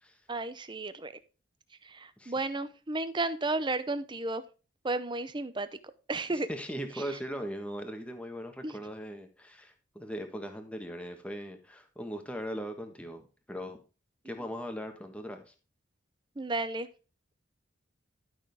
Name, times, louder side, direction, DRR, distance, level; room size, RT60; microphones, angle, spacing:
voice 1, 0.3-1.1 1.8-4.4 4.8-5.7 6.1-6.5 8.6-8.8 16.4-16.9, right 2 dB, 25° right, 13 dB, 0.7 m, -33 dB
voice 2, 6.3-13.8 14.2-15.4, equal, 5° left, 5 dB, 1.4 m, -39 dB
12.0 x 6.2 x 3.5 m, 0.33 s
head